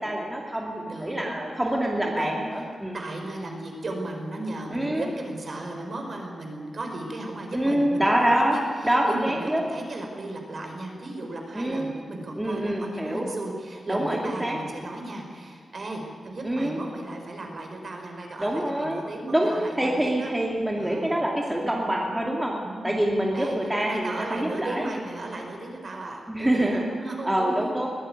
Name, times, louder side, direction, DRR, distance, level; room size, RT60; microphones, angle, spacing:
voice 1, 0.0-2.9 4.7-5.0 7.5-8.6 8.8-9.6 11.5-11.9 12.4-13.3 13.9-14.6 16.4-16.8 18.4-19.0 19.3-22.5 22.8-24.9 26.3-26.8 27.2-27.9, right 1 dB, 5° right, -1 dB, 2.5 m, -25 dB
voice 2, 0.8-1.3 2.1-2.7 2.9-20.3 20.7-21.2 21.8-22.2 22.6-23.0 23.3-27.7, right 2 dB, 40° right, 2 dB, 4.8 m, -36 dB
21.0 x 18.0 x 9.8 m, 2.2 s
wide cardioid pair, 160°, 0 cm